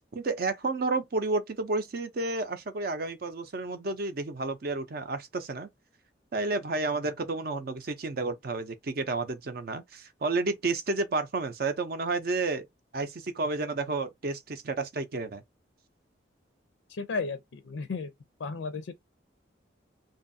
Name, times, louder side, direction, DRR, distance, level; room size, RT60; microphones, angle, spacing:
voice 1, 0.1-5.7 6.3-12.7 12.9-15.4, right 3 dB, 50° right, 0.5 m, -31 dB
voice 2, 16.9-18.1 18.4-19.0, left 4 dB, 80° left, 0.4 m, -34 dB
2.6 x 2.4 x 2.6 m
head